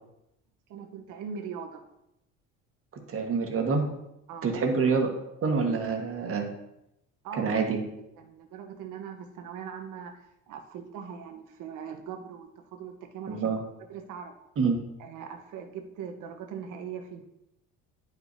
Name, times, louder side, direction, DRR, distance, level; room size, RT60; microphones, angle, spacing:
voice 1, 0.7-1.8 4.3-4.6 7.2-7.6 8.2-13.4 13.8-14.3 15.0-17.3, right 7 dB, 70° right, 5 dB, 1.1 m, -41 dB
voice 2, 3.1-3.8 4.4-5.1 5.4-6.5 7.4-7.8 13.3-13.6 14.6-14.8, right 5 dB, 45° right, 3 dB, 1.4 m, -26 dB
10.5 x 5.0 x 2.7 m, 0.85 s
cardioid pair, 115°, 32 cm